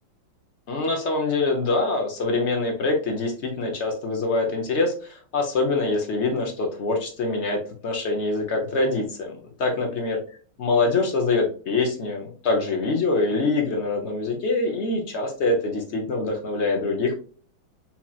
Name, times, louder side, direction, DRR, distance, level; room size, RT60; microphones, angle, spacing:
voice 1, 0.7-10.2 10.6-17.2, left 3 dB, 55° left, 2 dB, 0.8 m, -24 dB
5.7 x 2.9 x 2.4 m, 0.41 s
omnidirectional pair, 2.3 m